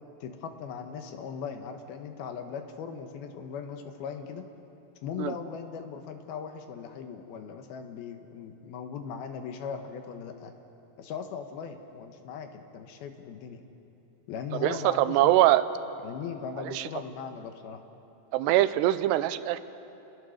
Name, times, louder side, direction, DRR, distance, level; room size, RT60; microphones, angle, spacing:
voice 1, 0.2-4.5 5.0-10.5 11.0-13.6 14.3-15.4 16.0-17.8, left 6 dB, 70° left, 6 dB, 2.9 m, -39 dB
voice 2, 14.6-15.6 16.7-16.9 18.3-19.6, right 14 dB, 90° right, 13 dB, 2.8 m, -23 dB
28.5 x 20.0 x 6.5 m, 2.9 s
omnidirectional pair, 4.7 m